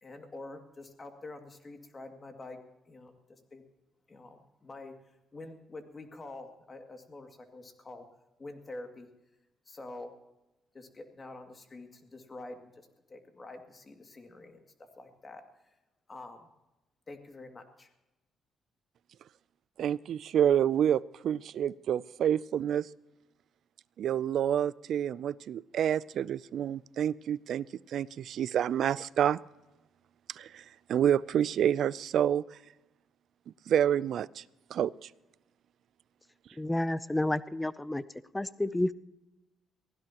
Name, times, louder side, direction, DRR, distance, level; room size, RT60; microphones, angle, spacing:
voice 1, 0.0-2.6 2.9-3.6 4.1-8.1 8.4-9.1 9.7-10.1 10.7-15.4 16.1-16.5 17.1-17.9, left 2 dB, 30° left, 4 dB, 2.3 m, -47 dB
voice 2, 19.8-22.9 24.0-29.4 30.3-30.6 30.9-32.4 33.7-34.4 34.7-35.1, right 9 dB, 70° right, 20 dB, 0.4 m, -28 dB
voice 3, 36.6-38.0 38.3-38.9, left 1 dB, 10° left, 16 dB, 0.6 m, -30 dB
23.0 x 16.0 x 3.0 m, 1.0 s
cardioid pair, 90°, 0 cm